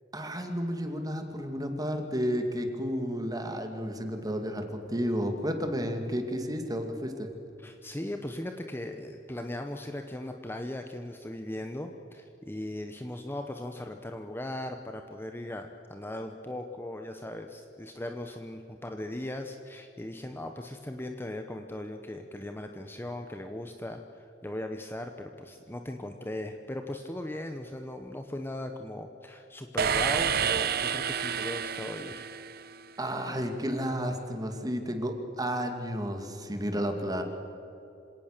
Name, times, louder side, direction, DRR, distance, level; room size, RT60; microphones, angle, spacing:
voice 1, 0.1-7.3 33.0-37.2, equal, 20° right, 5 dB, 2.3 m, -32 dB
voice 2, 7.6-32.3, left 1 dB, 10° left, 5 dB, 0.9 m, -38 dB
sound 1, 29.8-32.9, right 7 dB, 55° right, 0.8 m, -29 dB
27.0 x 17.5 x 6.7 m, 2.8 s
head